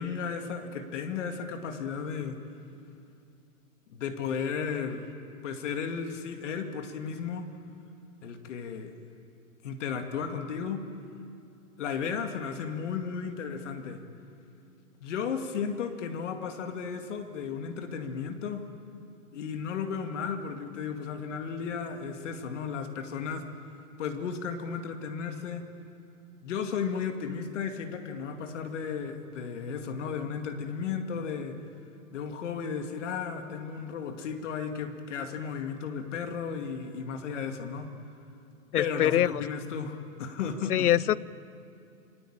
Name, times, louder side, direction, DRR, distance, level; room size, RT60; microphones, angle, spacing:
voice 1, 0.0-2.4 3.9-5.1 5.4-7.5 8.2-8.9 9.6-10.9 11.8-14.0 15.0-18.7 19.3-23.5 24.0-25.7 26.4-31.6 32.1-37.9 38.8-40.9, left 6 dB, 50° left, 6 dB, 2.3 m, -34 dB
voice 2, 38.7-39.4 40.7-41.2, left 12 dB, 75° left, 21 dB, 0.7 m, -24 dB
29.0 x 20.5 x 8.9 m, 2.5 s
hypercardioid pair, 155°, 46 cm